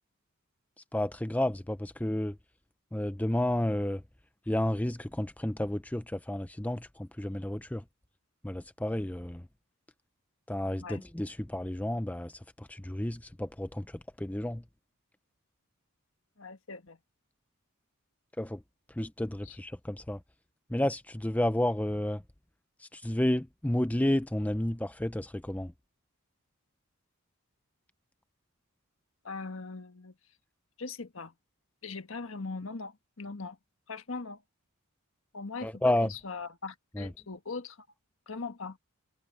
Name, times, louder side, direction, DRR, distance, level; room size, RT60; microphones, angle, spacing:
voice 1, 0.9-2.4 2.9-4.0 4.5-7.8 8.4-9.5 10.5-14.6 18.4-18.6 19.0-20.2 20.7-22.2 22.8-25.7 35.6-36.1 36.9-37.1, left 1 dB, 5° left, 0.6 m, -31 dB
voice 2, 16.4-17.0 19.4-19.6 29.2-30.1 30.8-31.3 31.8-33.6 33.9-34.4 35.3-37.9 38.3-38.8, left 4 dB, 65° left, 1.6 m, -40 dB
head